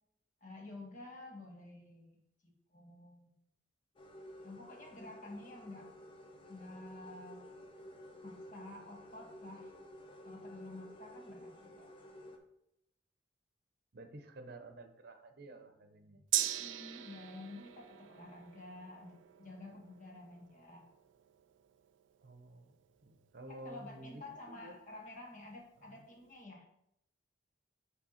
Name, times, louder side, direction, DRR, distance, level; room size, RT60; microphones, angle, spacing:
voice 1, 0.4-2.2 2.4-3.4 4.4-5.9 6.5-7.6 8.2-9.7 10.2-11.9 16.4-20.9 23.5-26.6, left 2 dB, 45° left, 0 dB, 1.5 m, -51 dB
sound 1, 4.0-12.4, equal, 30° left, 0.7 m, -53 dB
voice 2, 13.9-16.2 22.2-24.2 24.5-25.0 25.8-26.0, right 1 dB, 60° right, 7 dB, 0.8 m, -52 dB
Gong, 16.3-24.1 24.4-24.5, right 13 dB, 90° right, 0.4 m, -42 dB
7.3 x 3.4 x 4.3 m, 0.79 s
head